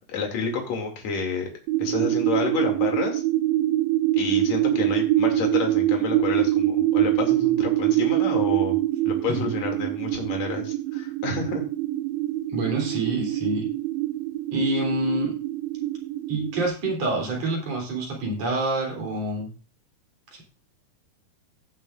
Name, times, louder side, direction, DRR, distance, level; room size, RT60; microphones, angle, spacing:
voice 1, 0.0-1.5 1.8-3.2 4.1-8.8 9.1-11.6, left 4 dB, 45° left, 2 dB, 3.3 m, -29 dB
sound 1, 1.7-16.7, right 14 dB, 80° right, 2.4 m, -24 dB
voice 2, 12.5-13.7 14.5-15.3 16.3-19.5 20.3-20.4, right 2 dB, 40° right, -1 dB, 4.2 m, -27 dB
17.0 x 7.5 x 2.5 m, 0.36 s
omnidirectional pair, 4.8 m